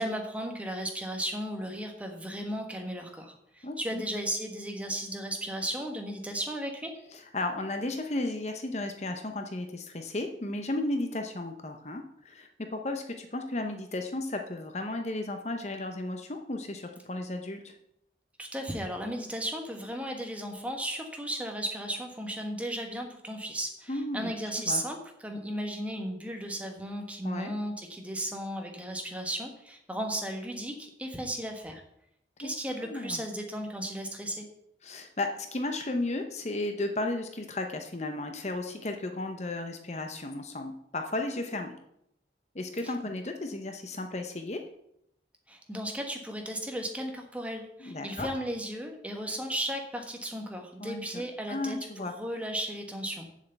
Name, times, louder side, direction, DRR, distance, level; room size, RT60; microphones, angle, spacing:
voice 1, 0.0-6.9 18.4-25.0 25.2-31.8 32.4-34.5 42.8-42.9 45.5-53.4, right 1 dB, 5° right, 3 dB, 1.4 m, -35 dB
voice 2, 3.6-4.0 7.1-17.8 23.9-24.3 24.7-24.8 27.2-27.5 32.4-32.5 32.8-33.2 34.8-41.8 42.5-44.6 47.8-48.3 50.8-51.2 51.5-52.1, left 2 dB, 35° left, 5 dB, 0.8 m, -34 dB
7.3 x 6.5 x 8.0 m, 0.76 s
head